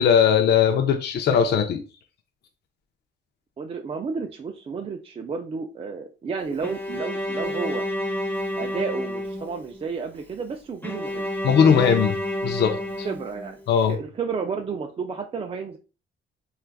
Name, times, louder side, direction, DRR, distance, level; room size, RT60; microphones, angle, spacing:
voice 1, 0.0-1.8 11.4-12.2 12.4-13.1 13.7-14.0, left 7 dB, 60° left, 0.4 m, -19 dB
voice 2, 3.6-7.8 8.6-11.3 13.0-13.6 13.9-15.8, right 5 dB, 30° right, 0.3 m, -31 dB
Bowed string instrument, 6.6-9.8 10.8-13.8, left 1 dB, 10° left, 0.8 m, -30 dB
3.2 x 2.4 x 2.3 m
cardioid pair, 90°, 20 cm